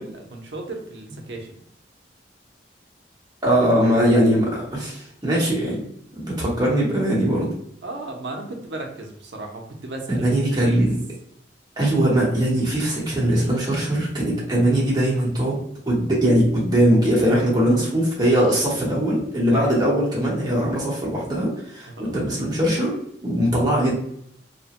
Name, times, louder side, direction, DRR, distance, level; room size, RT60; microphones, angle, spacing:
voice 1, 0.0-1.5 7.8-10.9 19.4-19.7 21.9-22.2 23.7-23.9, right 2 dB, 80° right, 2 dB, 0.7 m, -35 dB
voice 2, 3.4-5.8 6.1-7.5 10.1-10.9 11.8-15.6 15.8-22.9 23.2-23.9, right 1 dB, 25° right, -5 dB, 1.0 m, -20 dB
2.9 x 2.1 x 2.9 m, 0.70 s
head